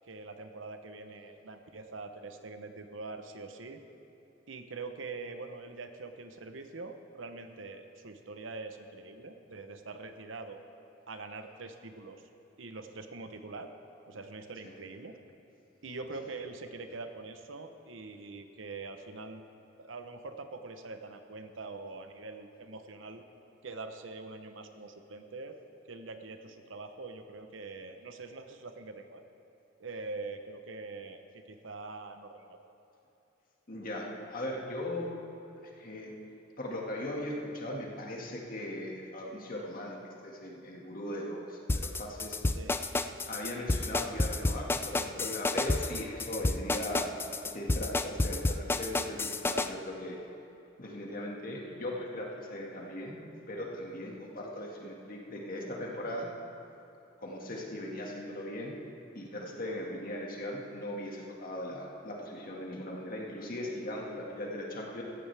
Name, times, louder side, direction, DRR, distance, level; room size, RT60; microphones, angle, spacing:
voice 1, 0.1-3.8 4.5-10.6 11.1-12.2 12.6-13.7 14.1-15.2 15.8-19.4 19.8-23.2 23.6-25.6 25.9-29.2 29.8-32.6 42.5-42.8, right 3 dB, 80° right, 7 dB, 0.9 m, -44 dB
voice 2, 33.7-35.1 35.8-36.1 36.6-42.4 43.3-47.1 47.4-50.2 50.8-53.2 53.5-56.3 57.2-58.7 59.1-65.0, left 1 dB, 50° left, -1 dB, 1.9 m, -39 dB
sound 1, 41.7-49.7, left 2 dB, 10° left, 0.3 m, -30 dB
16.5 x 14.0 x 3.5 m, 2.9 s
head